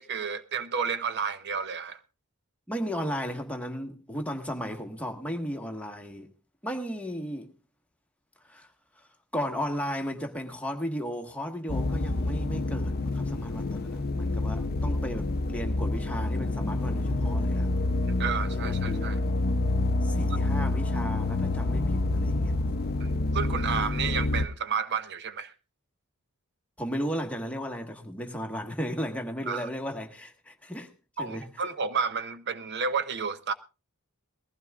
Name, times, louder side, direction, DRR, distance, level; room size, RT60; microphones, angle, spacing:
voice 1, 0.0-2.0 18.0-19.2 23.0-25.5 29.5-29.7 31.2-33.5, right 6 dB, 50° right, 0.6 m, -31 dB
voice 2, 2.7-6.3 6.6-7.5 8.4-8.7 9.0-17.7 18.6-19.3 20.0-22.6 26.8-30.9 31.2-31.5, equal, 5° left, 1.4 m, -35 dB
sound 1, 11.7-24.5, left 2 dB, 45° left, 0.6 m, -28 dB
20.5 x 15.0 x 2.4 m
head